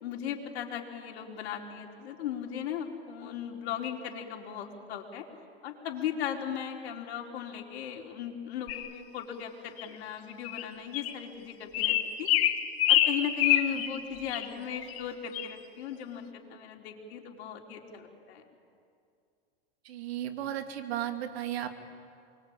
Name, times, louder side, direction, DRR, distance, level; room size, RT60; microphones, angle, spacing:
voice 1, 0.0-5.3 5.6-12.3 12.9-18.4, left 9 dB, 75° left, 0 dB, 4.3 m, -37 dB
sound 1, 8.7-8.9 9.8-9.9 10.5-10.6 10.9-11.1 11.7-14.0 14.3-14.5 14.8-15.0 15.3-15.5, left 12 dB, 45° left, 2.1 m, -26 dB
voice 2, 19.8-21.8, right 11 dB, 75° right, 6 dB, 2.7 m, -35 dB
28.0 x 23.0 x 8.9 m, 2.4 s
hypercardioid pair, 110°, 32 cm